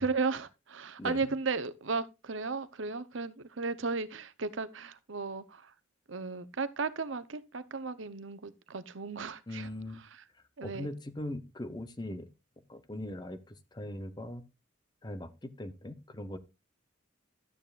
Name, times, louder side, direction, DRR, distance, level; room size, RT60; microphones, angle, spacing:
voice 1, 0.0-5.7 6.1-10.2 10.6-10.9, right 4 dB, 75° right, 0.8 m, -35 dB
voice 2, 9.5-10.0 10.6-12.3 12.7-14.4 15.0-16.4, left 1 dB, 20° left, 0.7 m, -40 dB
12.5 x 9.1 x 2.4 m
head